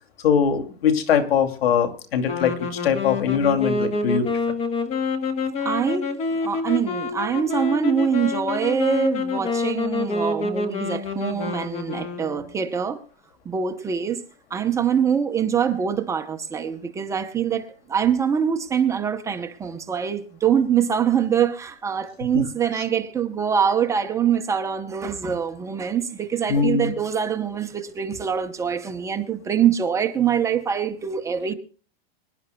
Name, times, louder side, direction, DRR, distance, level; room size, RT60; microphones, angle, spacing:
voice 1, 0.2-4.4 22.3-22.4 22.7-22.8 26.5-27.0, left 7 dB, 85° left, 2.6 m, -22 dB
sound 1, 2.3-12.7, left 3 dB, 20° left, 1.2 m, -27 dB
voice 2, 5.6-6.1 6.4-13.0 13.5-14.2 14.5-31.5, right 7 dB, 10° right, 0.6 m, -24 dB
25.0 x 11.0 x 2.2 m
supercardioid pair, 160°, 29 cm